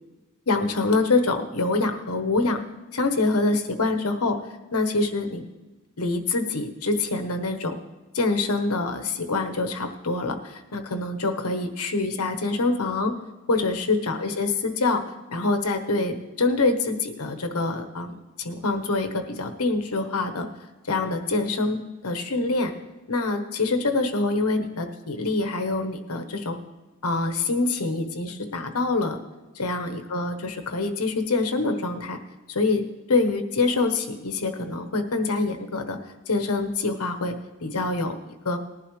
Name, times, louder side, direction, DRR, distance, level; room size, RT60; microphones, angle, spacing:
voice 1, 0.5-2.6 2.9-4.4 4.7-5.4 6.0-7.7 8.1-13.1 13.5-20.5 20.9-22.7 23.1-26.6 27.0-29.2 29.5-32.2 32.5-32.8 33.1-36.0 36.3-37.3 37.6-38.2 38.4-38.6, left 3 dB, 80° left, 6 dB, 1.1 m, -25 dB
19.0 x 11.0 x 3.2 m, 1.1 s
head